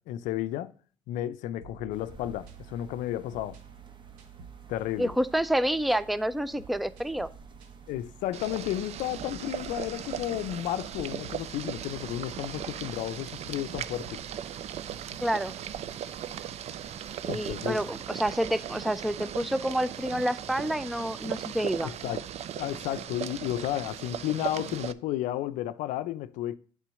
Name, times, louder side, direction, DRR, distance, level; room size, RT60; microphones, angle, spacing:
voice 1, 0.1-0.7 1.1-3.6 4.7-5.1 7.9-14.2 17.3-17.8 21.8-22.2 22.6-26.6, left 13 dB, 75° left, 0.5 m, -32 dB
sound 1, 1.6-15.3, right 8 dB, 90° right, 1.0 m, -51 dB
sound 2, 1.9-21.7, right 3 dB, 35° right, 1.1 m, -53 dB
voice 2, 5.0-7.3 15.2-15.5 17.2-21.9, right 1 dB, ahead, 0.4 m, -28 dB
Boiling, 8.3-24.9, right 10 dB, 55° right, 0.5 m, -38 dB
8.3 x 3.8 x 6.2 m
supercardioid pair, 75°, 13 cm